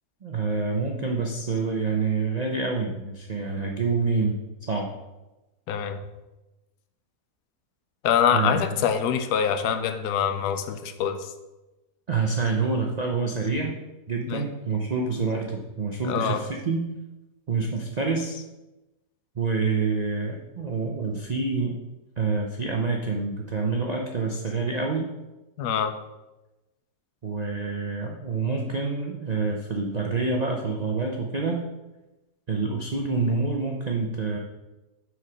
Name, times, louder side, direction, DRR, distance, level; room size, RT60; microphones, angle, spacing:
voice 1, 0.2-4.4 4.7-4.9 8.3-8.6 12.1-13.8 14.1-16.8 17.5-18.4 19.4-21.8 22.2-25.1 27.2-31.6 32.5-34.4, right 4 dB, 80° right, 1 dB, 0.3 m, -27 dB
voice 2, 5.7-6.0 8.0-11.3 14.3-14.4 16.0-16.4 25.6-25.9, left 8 dB, 85° left, 8 dB, 1.2 m, -25 dB
6.1 x 4.6 x 5.0 m, 1.0 s
omnidirectional pair, 1.7 m